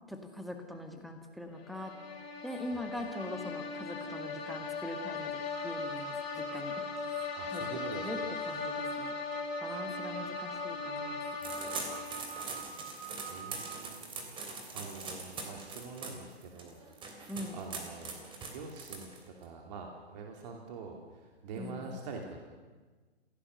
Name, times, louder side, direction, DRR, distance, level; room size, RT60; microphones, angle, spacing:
voice 1, 0.1-1.9 2.4-7.6 7.9-8.2 8.5-9.2 9.6-11.1 17.3-17.6 21.6-22.0, left 1 dB, ahead, 5 dB, 1.9 m, -42 dB
sound 1, 1.6-12.6, left 4 dB, 45° left, 4.3 m, -39 dB
sound 2, 5.5-13.8, right 7 dB, 70° right, 3.5 m, -46 dB
voice 2, 7.3-8.1 11.4-12.0 12.9-14.4 14.7-18.2 18.5-22.5, right 4 dB, 40° right, 2 dB, 2.8 m, -46 dB
sound 3, 11.4-19.4, right 4 dB, 15° right, 3.3 m, -42 dB
26.5 x 17.0 x 6.7 m, 1.3 s
figure-of-eight pair, 130°, 32 cm